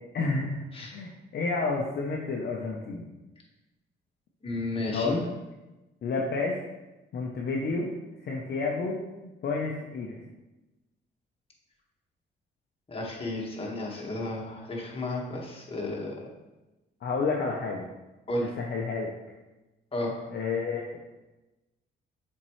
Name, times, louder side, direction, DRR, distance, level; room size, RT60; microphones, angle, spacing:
voice 1, 0.1-0.5 0.8-3.1 4.9-5.2 6.0-6.6 7.1-7.9 8.2-9.0 9.4-10.2 17.0-17.9 18.4-19.1 20.3-20.8, left 4 dB, 55° left, -1 dB, 0.8 m, -30 dB
voice 2, 4.4-5.2 12.9-16.1 18.3-18.5 19.9-20.2, left 2 dB, 30° left, -2 dB, 1.6 m, -32 dB
7.2 x 4.5 x 3.2 m, 1.0 s
cardioid pair, 90°, 20 cm